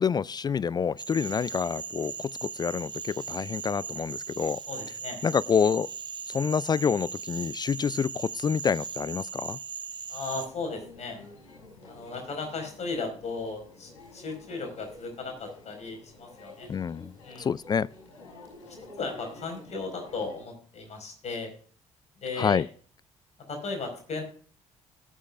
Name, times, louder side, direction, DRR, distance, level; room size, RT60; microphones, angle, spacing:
voice 1, 0.0-4.6 5.2-5.9 6.3-9.6 16.7-17.1 17.4-17.9 22.4-22.6, left 6 dB, 25° left, 0.3 m, -27 dB
Cricket / Frog, 1.0-10.5, right 6 dB, 30° right, 0.8 m, -38 dB
voice 2, 4.7-5.2 10.1-11.2 11.8-16.7 17.2-17.5 18.6-21.5 22.2-22.7 23.5-24.2, left 4 dB, 45° left, 4.8 m, -36 dB
sound 1, 10.3-20.4, left 2 dB, 70° left, 5.5 m, -50 dB
19.0 x 8.2 x 2.4 m
figure-of-eight pair, 45°, 16 cm